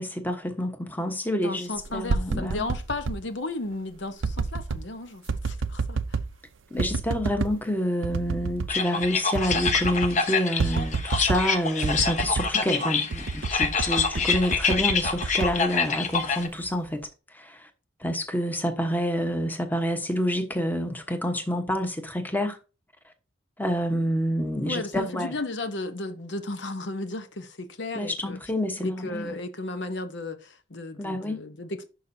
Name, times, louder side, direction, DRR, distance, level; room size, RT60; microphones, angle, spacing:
voice 1, 0.0-2.7 6.7-17.1 17.3-17.7 18.0-22.6 23.6-25.3 27.9-29.4 31.0-31.4, equal, 10° left, 1.1 m, -28 dB
voice 2, 1.4-6.2 24.6-28.4 28.8-31.9, left 2 dB, 65° left, 0.9 m, -34 dB
sound 1, 1.9-3.2 4.2-4.8 5.3-6.3 6.8-7.6 8.0-8.8 9.0-9.1 9.4-10.2 10.6-11.5 11.8-12.6 13.1-16.2 16.6-17.0, right 4 dB, 85° right, 0.5 m, -29 dB
sound 2, 8.7-16.5, left 5 dB, 40° left, 0.9 m, -26 dB
11.0 x 5.5 x 2.7 m
head